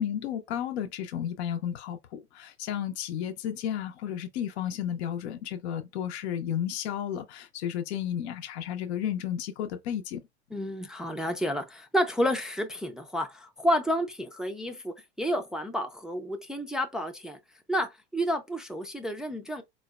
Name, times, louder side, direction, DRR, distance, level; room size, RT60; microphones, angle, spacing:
voice 1, 0.0-10.2, left 10 dB, 75° left, 0.6 m, -33 dB
voice 2, 10.5-17.4 17.7-19.6, equal, ahead, 0.3 m, -30 dB
3.9 x 2.0 x 2.3 m
hypercardioid pair, 95°, 34 cm